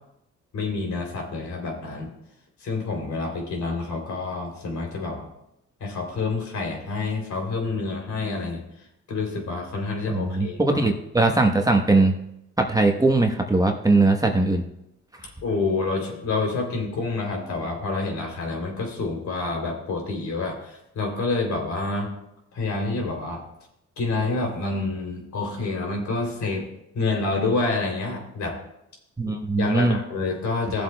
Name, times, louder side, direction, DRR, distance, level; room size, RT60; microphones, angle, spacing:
voice 1, 0.5-2.1 2.6-5.3 5.8-8.6 9.1-10.9 15.4-22.1 22.5-23.4 24.0-26.7 26.9-28.6 29.6-30.8, left 3 dB, 70° left, 1 dB, 3.2 m, -28 dB
voice 2, 10.1-12.1 12.6-14.6 29.2-30.0, right 2 dB, 10° right, 3 dB, 1.1 m, -20 dB
16.5 x 7.5 x 2.3 m, 0.82 s
cardioid pair, 90°, 30 cm